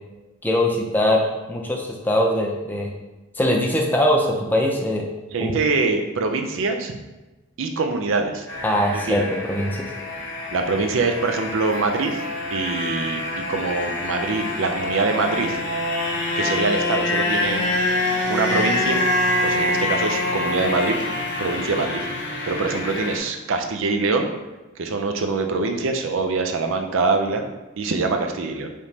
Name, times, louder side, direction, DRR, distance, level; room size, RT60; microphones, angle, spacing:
voice 1, 0.4-1.2 1.5-2.9 3.4-5.1 5.4-5.5 8.6-9.9, left 1 dB, 10° left, 0 dB, 0.4 m, -21 dB
voice 2, 5.3-7.0 7.6-8.5 8.9-9.3 10.5-12.2 12.5-15.6 16.4-17.6 18.3-19.0 19.4-21.0 21.4-22.1 22.4-24.3 24.8-27.4 27.8-28.7, right 3 dB, 60° right, 5 dB, 0.4 m, -24 dB
sound 1, 8.5-23.2, left 2 dB, 50° left, 0.8 m, -25 dB
5.0 x 3.1 x 2.7 m, 1.1 s
head